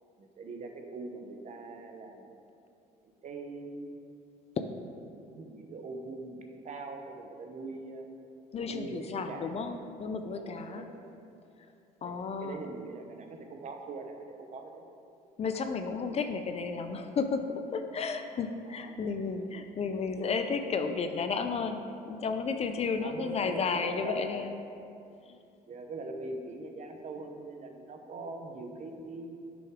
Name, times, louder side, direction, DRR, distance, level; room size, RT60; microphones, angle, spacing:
voice 1, 0.2-2.5 3.0-4.0 5.1-8.1 8.7-9.8 10.3-11.2 12.0-14.8 18.7-18.9 19.2-19.4 23.0-24.5 25.7-29.4, right 3 dB, 45° right, 4 dB, 0.8 m, -42 dB
voice 2, 8.5-10.9 12.0-12.6 15.4-17.4 17.7-24.6 25.3-25.4, left 5 dB, 40° left, 7 dB, 0.5 m, -33 dB
9.0 x 6.0 x 3.7 m, 2.5 s
cardioid pair, 110°, 17 cm